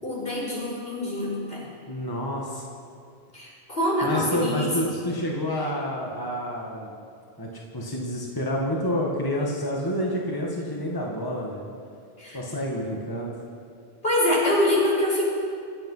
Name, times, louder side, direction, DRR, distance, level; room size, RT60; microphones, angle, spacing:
voice 1, 0.0-1.6 3.3-4.7 12.2-12.4 14.0-15.3, left 1 dB, 70° left, -6 dB, 5.1 m, -25 dB
voice 2, 1.9-2.7 4.0-6.9 7.4-11.6 12.3-13.4, equal, 20° left, -2 dB, 1.7 m, -28 dB
25.5 x 9.0 x 5.6 m, 2.4 s
omnidirectional pair, 1.0 m